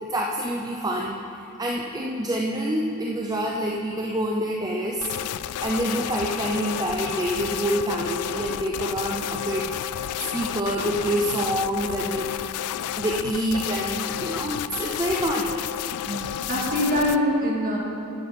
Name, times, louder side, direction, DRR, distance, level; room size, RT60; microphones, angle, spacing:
voice 1, 0.0-5.1 5.6-9.7 10.2-12.7 13.0-15.6, right 1 dB, 15° right, -1 dB, 0.6 m, -27 dB
sound 1, 5.0-17.2, left 11 dB, 85° left, 0.3 m, -31 dB
voice 2, 16.0-17.8, left 1 dB, 40° right, -4 dB, 2.4 m, -24 dB
11.0 x 9.1 x 5.3 m, 2.9 s
head